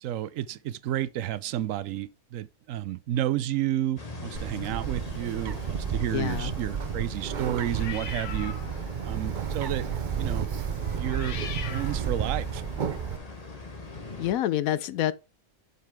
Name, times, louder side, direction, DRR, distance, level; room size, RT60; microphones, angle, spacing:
voice 1, 0.0-8.5 9.0-9.9 10.2-10.5 11.0-11.4 11.7-12.6, right 12 dB, 75° right, 1.0 m, -31 dB
sound 1, 4.0-14.3, left 3 dB, 30° left, 1.3 m, -43 dB
Bird, 4.3-13.2, right 7 dB, 45° right, 0.7 m, -32 dB
voice 2, 6.1-6.5 14.2-15.1, left 12 dB, 90° left, 1.1 m, -27 dB
sound 2, 7.7-8.9 9.3-9.6 10.8-12.6, left 7 dB, 65° left, 1.2 m, -41 dB
7.6 x 6.8 x 3.6 m
omnidirectional pair, 1.4 m